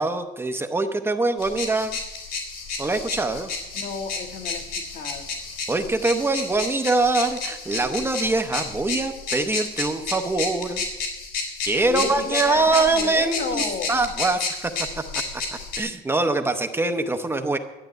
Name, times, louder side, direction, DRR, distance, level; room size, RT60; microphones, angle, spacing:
voice 1, 0.0-2.0 2.8-3.5 5.7-10.9 11.6-15.0 15.3-17.6, right 3 dB, 15° right, 6 dB, 0.7 m, -24 dB
sound 1, 1.4-15.8, left 4 dB, 75° left, 3.8 m, -31 dB
voice 2, 3.7-5.3 11.9-14.0, left 5 dB, 60° left, 5 dB, 1.5 m, -32 dB
12.0 x 8.0 x 9.0 m, 1.0 s
cardioid pair, 160°, 17 cm